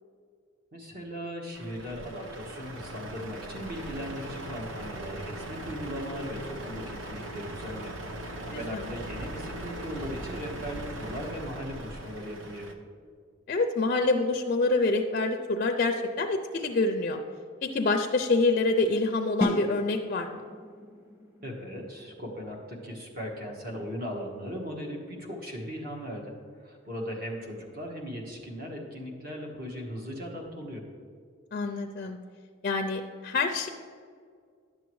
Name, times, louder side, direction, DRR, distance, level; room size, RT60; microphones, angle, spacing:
voice 1, 0.7-12.7 21.4-26.3 26.6-30.8, equal, 45° right, 0 dB, 1.3 m, -38 dB
Truck, 1.5-12.7, right 1 dB, 70° right, 0.8 m, -39 dB
voice 2, 8.5-8.9 13.5-17.2 17.6-20.4 31.5-32.2 32.6-33.7, left 3 dB, 45° left, 5 dB, 0.4 m, -26 dB
sound 1, 19.4-25.1, left 1 dB, 15° right, 1.5 m, -37 dB
10.5 x 7.0 x 3.1 m, 2.1 s
head